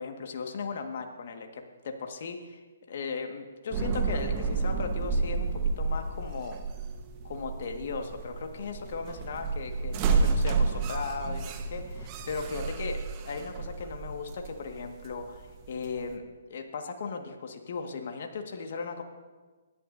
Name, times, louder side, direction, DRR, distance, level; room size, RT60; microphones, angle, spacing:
voice 1, 0.0-6.6 7.2-19.0, left 4 dB, 55° left, 4 dB, 1.7 m, -37 dB
sound 1, 3.7-16.1, right 4 dB, 30° right, 1.2 m, -31 dB
25.5 x 11.5 x 2.7 m, 1.3 s
hypercardioid pair, 135°, 0 cm